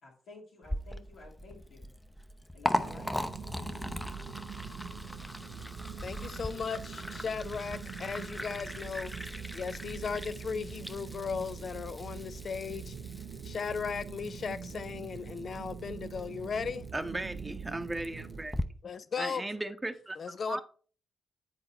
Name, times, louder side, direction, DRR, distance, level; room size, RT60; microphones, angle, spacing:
voice 1, 0.0-1.9 2.5-3.3, left 2 dB, 75° left, 2.1 m, -52 dB
Liquid, 0.6-18.6, left 1 dB, 10° left, 0.7 m, -40 dB
sound 1, 2.7-18.4, right 7 dB, 75° right, 0.5 m, -44 dB
voice 2, 6.0-12.9 13.4-16.9 18.8-19.4 20.2-20.6, left 5 dB, 55° left, 0.5 m, -37 dB
voice 3, 16.9-18.5 19.2-20.2 20.5-20.6, right 2 dB, 20° right, 0.8 m, -36 dB
7.9 x 4.0 x 4.3 m
hypercardioid pair, 45°, 0 cm